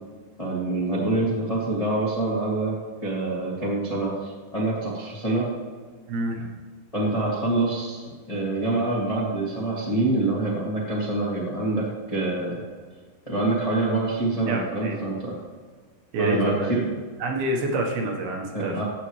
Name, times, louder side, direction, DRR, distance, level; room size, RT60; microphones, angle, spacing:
voice 1, 0.4-2.7 3.0-5.5 6.9-12.6 13.2-15.3 16.2-16.8 18.5-18.8, right 2 dB, 20° left, -6 dB, 0.8 m, -26 dB
voice 2, 6.1-6.5 14.5-15.1 16.1-16.8 17.2-18.8, right 2 dB, 70° right, 1 dB, 2.9 m, -27 dB
14.5 x 8.3 x 3.3 m, 1.5 s
omnidirectional pair, 5.3 m